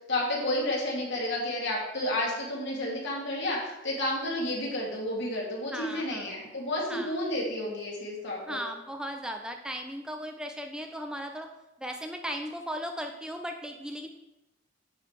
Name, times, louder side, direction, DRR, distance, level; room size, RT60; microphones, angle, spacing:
voice 1, 0.1-8.6, left 1 dB, 60° left, -3 dB, 2.7 m, -31 dB
voice 2, 5.7-6.3 6.9-7.2 8.5-11.5 11.8-14.1, equal, 5° right, 5 dB, 0.5 m, -37 dB
9.5 x 3.9 x 6.5 m, 0.98 s
head